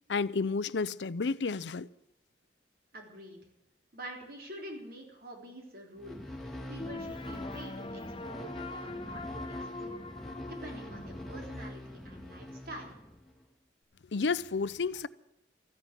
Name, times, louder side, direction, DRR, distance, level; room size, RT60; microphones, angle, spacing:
voice 1, 0.1-1.9 14.1-15.1, left 4 dB, 75° left, 0.6 m, -31 dB
voice 2, 2.9-3.4 3.9-6.2 6.7-9.4 9.8-10.0 10.4-13.0, right 1 dB, 55° right, 3.8 m, -46 dB
sound 1, 6.0-13.4, left 1 dB, ahead, 2.7 m, -43 dB
sound 2, 6.8-11.8, left 2 dB, 30° left, 0.8 m, -43 dB
14.0 x 9.7 x 9.2 m
head